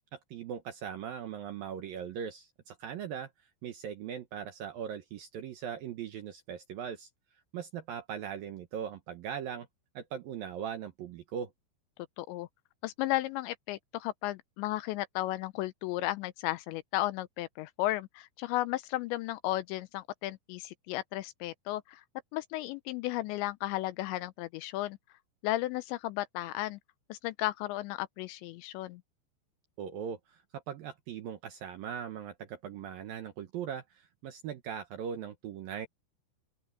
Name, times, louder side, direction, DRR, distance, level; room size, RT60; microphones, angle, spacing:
voice 1, 0.1-3.3 3.6-7.1 7.5-9.7 9.9-11.5 29.8-35.9, right 8 dB, 75° right, 2.1 m, -40 dB
voice 2, 12.2-12.5 12.8-22.0 22.3-25.0 25.4-26.8 27.1-29.0, left 17 dB, 90° left, 2.6 m, -34 dB
open air
omnidirectional pair, 5.8 m